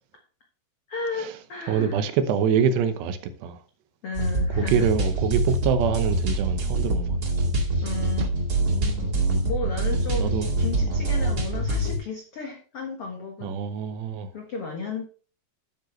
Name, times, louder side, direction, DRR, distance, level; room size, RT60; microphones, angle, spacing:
voice 1, 0.9-2.0 4.0-4.9 7.8-8.3 9.4-13.6 14.3-15.1, left 4 dB, 75° left, 1.3 m, -34 dB
voice 2, 1.7-3.6 4.6-7.5 8.2-8.3 8.6-9.3 10.2-11.1 13.4-14.3, right 7 dB, 75° right, 3.0 m, -26 dB
sound 1, 4.1-12.0, right 2 dB, 35° right, 1.7 m, -25 dB
12.0 x 8.7 x 3.2 m
omnidirectional pair, 5.1 m